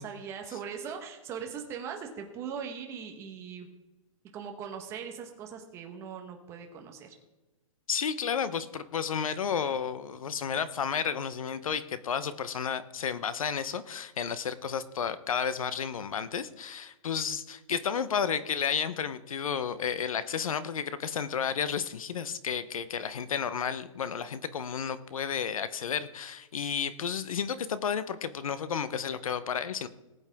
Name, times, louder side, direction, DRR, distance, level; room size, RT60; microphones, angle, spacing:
voice 1, 0.0-3.7 4.3-7.1, right 7 dB, 15° right, 3 dB, 1.2 m, -40 dB
voice 2, 7.9-29.9, left 7 dB, 75° left, 14 dB, 0.9 m, -32 dB
19.0 x 8.2 x 3.6 m, 1.1 s
hypercardioid pair, 165°, 18 cm